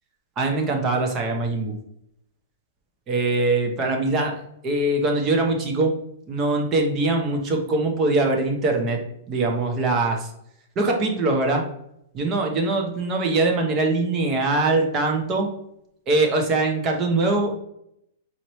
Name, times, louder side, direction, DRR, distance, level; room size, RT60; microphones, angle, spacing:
voice 1, 0.4-1.7 3.1-4.3 4.6-5.9 6.3-9.0 9.3-10.3 10.8-11.7 12.1-15.5 16.1-17.6, right 2 dB, 25° right, 2 dB, 0.8 m, -22 dB
4.2 x 3.0 x 3.1 m, 0.76 s
hypercardioid pair, 155°, 0 cm